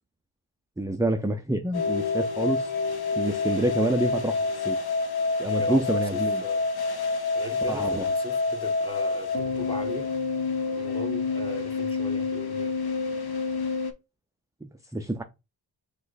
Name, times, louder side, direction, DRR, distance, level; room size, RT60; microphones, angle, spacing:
voice 1, 0.8-2.7 3.2-4.4 4.6-4.8 5.4-6.4 7.7-8.1 14.6-15.2, right 1 dB, 5° right, 0.5 m, -27 dB
sound 1, 1.7-13.9, left 4 dB, 50° left, 1.0 m, -28 dB
voice 2, 5.4-6.6 7.3-10.1 10.7-12.7, left 1 dB, 10° left, 1.3 m, -38 dB
6.1 x 3.2 x 2.5 m
cardioid pair, 55°, 49 cm